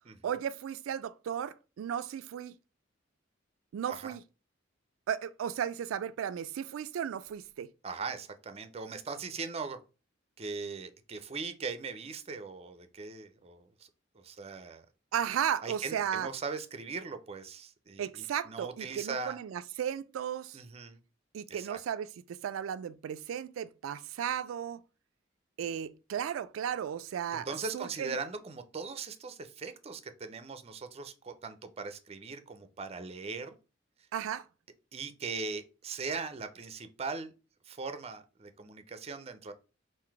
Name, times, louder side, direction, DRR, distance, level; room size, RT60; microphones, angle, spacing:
voice 1, 0.2-2.5 3.7-4.2 5.1-7.7 15.1-16.3 18.0-20.6 21.3-24.8 25.6-27.5 27.7-28.2 34.1-34.5, right 9 dB, 90° right, 0.3 m, -35 dB
voice 2, 7.8-9.8 10.4-13.9 14.1-14.9 15.6-19.4 20.5-21.0 21.5-21.8 27.3-33.5 34.9-37.3 37.6-39.5, right 4 dB, 30° right, 0.5 m, -40 dB
3.8 x 2.5 x 4.6 m
head